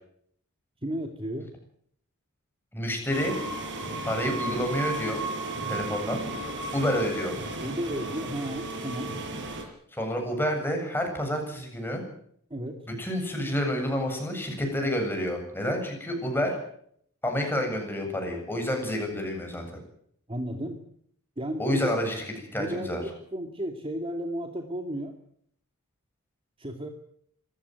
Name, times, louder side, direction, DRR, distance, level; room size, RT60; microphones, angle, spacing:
voice 1, 0.8-1.5 7.6-9.1 12.5-12.8 20.3-20.8 21.4-22.0 22.6-25.1 26.6-26.9, equal, 25° right, 5 dB, 2.3 m, -33 dB
voice 2, 2.7-3.3 4.0-5.2 5.7-6.2 6.7-7.3 9.9-12.0 13.0-16.6 17.2-19.6 21.6-22.3 22.5-23.0, equal, 10° left, 3 dB, 8.0 m, -29 dB
sound 1, 3.1-9.6, right 2 dB, 60° right, 5.8 m, -34 dB
26.0 x 15.5 x 9.4 m, 0.68 s
head